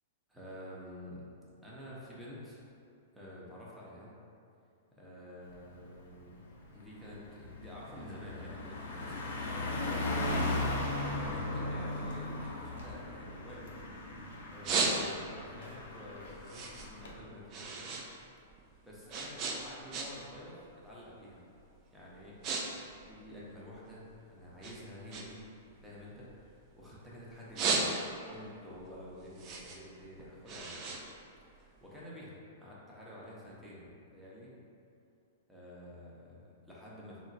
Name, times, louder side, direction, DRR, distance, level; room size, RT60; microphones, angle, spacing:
voice 1, 0.3-1.2 1.6-2.6 3.1-4.1 4.9-9.3 10.2-13.7 14.5-17.9 18.8-20.6 20.8-21.4 21.9-22.6 23.1-25.4 25.8-27.9 28.3-30.9 31.4-34.6 35.5-37.2, left 1 dB, 5° right, -7 dB, 0.8 m, -49 dB
Car passing by, 5.5-5.8 6.2-17.1, left 2 dB, 70° left, 0.5 m, -37 dB
sound 1, 12.9-14.0 14.4-15.4 15.9-18.1 18.3-20.4 20.7-21.0 21.6-21.8 22.1-22.6 22.9-24.1 24.6-26.9 27.3-28.4 28.8-31.9, right 4 dB, 40° right, 0.4 m, -36 dB
3.7 x 2.1 x 2.6 m, 2.5 s
hypercardioid pair, 110°, 0 cm